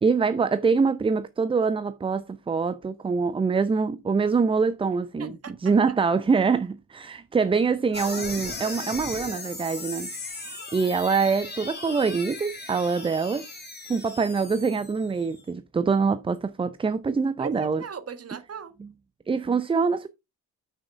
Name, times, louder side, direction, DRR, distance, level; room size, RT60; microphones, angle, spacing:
voice 1, 0.0-10.1 10.4-13.5 13.9-17.8 19.3-20.1, right 5 dB, 10° right, 0.5 m, -24 dB
voice 2, 5.2-5.7 17.4-18.7, right 6 dB, 30° right, 1.4 m, -38 dB
sound 1, 7.9-15.4, left 2 dB, 20° left, 3.5 m, -37 dB
9.2 x 6.2 x 3.5 m
figure-of-eight pair, 50°, 46 cm